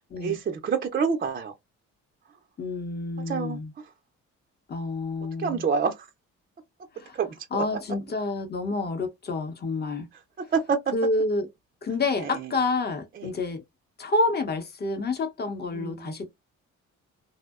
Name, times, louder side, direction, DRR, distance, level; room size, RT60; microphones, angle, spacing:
voice 1, 0.2-1.5 3.3-3.8 5.4-6.1 7.1-7.6 10.5-10.8 12.2-12.3 13.2-13.3 15.7-16.1, right 6 dB, 30° right, 0.4 m, -27 dB
voice 2, 2.6-3.7 4.7-5.7 7.0-7.2 7.5-10.1 10.9-11.5 11.8-13.6 14.0-16.3, left 3 dB, 35° left, 0.8 m, -28 dB
2.6 x 2.0 x 2.3 m
cardioid pair, 90°, 30 cm